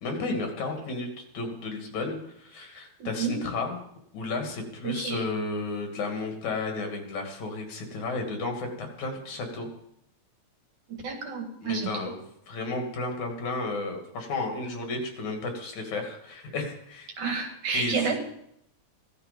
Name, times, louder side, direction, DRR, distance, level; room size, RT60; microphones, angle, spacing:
voice 1, 0.0-3.8 4.1-9.7 11.6-17.1 17.7-18.0, left 3 dB, 75° left, 3 dB, 3.9 m, -33 dB
voice 2, 3.0-3.4 4.8-5.3 10.9-12.1 17.2-18.2, right 5 dB, 75° right, 4 dB, 3.3 m, -30 dB
15.5 x 12.5 x 5.3 m, 0.74 s
omnidirectional pair, 3.4 m